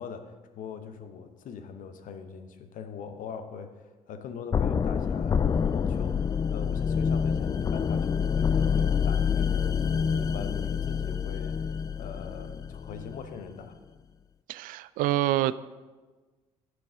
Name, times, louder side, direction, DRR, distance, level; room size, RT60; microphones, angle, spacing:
voice 1, 0.0-13.8, left 6 dB, 50° left, 8 dB, 0.9 m, -42 dB
sound 1, 4.5-13.4, left 6 dB, 20° left, 0.3 m, -27 dB
voice 2, 14.5-15.6, right 14 dB, 55° right, 16 dB, 0.4 m, -26 dB
14.5 x 6.2 x 3.7 m, 1.3 s
figure-of-eight pair, 45°, 17 cm